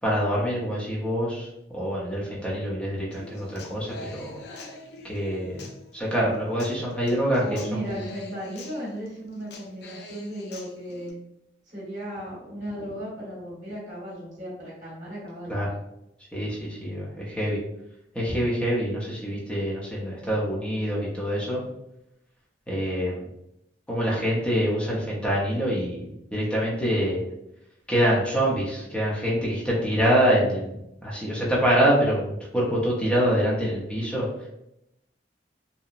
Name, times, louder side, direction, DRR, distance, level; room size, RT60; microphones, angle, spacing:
voice 1, 0.0-4.4 5.0-8.0 15.5-15.7 16.3-17.6 18.1-21.6 22.7-23.3 23.9-27.3 27.9-34.3, equal, 5° left, -6 dB, 0.6 m, -25 dB
Human voice / Acoustic guitar, 3.1-11.1, left 2 dB, 65° left, 0.4 m, -45 dB
voice 2, 7.4-11.2 11.7-15.6, equal, 40° right, -6 dB, 1.1 m, -36 dB
2.8 x 2.0 x 2.4 m, 0.85 s
head